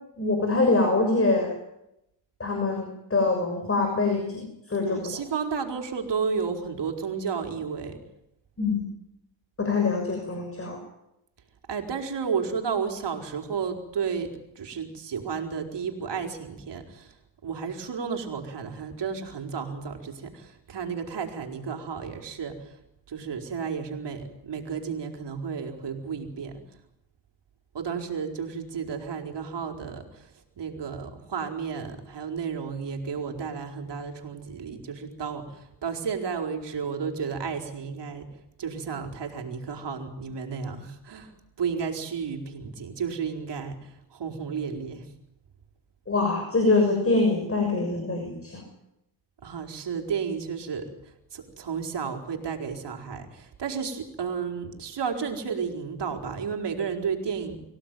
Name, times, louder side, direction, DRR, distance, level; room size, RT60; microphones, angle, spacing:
voice 1, 0.2-1.5 2.4-5.0 8.6-8.8 9.6-10.8 46.1-48.6, left 3 dB, 30° left, 3 dB, 6.7 m, -24 dB
voice 2, 4.8-8.0 11.7-17.1 17.4-22.8 23.1-26.6 27.7-38.3 38.6-41.3 41.6-45.0 49.4-50.9 51.3-57.6, right 6 dB, 60° right, 4 dB, 4.6 m, -32 dB
25.5 x 17.0 x 9.3 m, 0.84 s
cardioid pair, 85°, 48 cm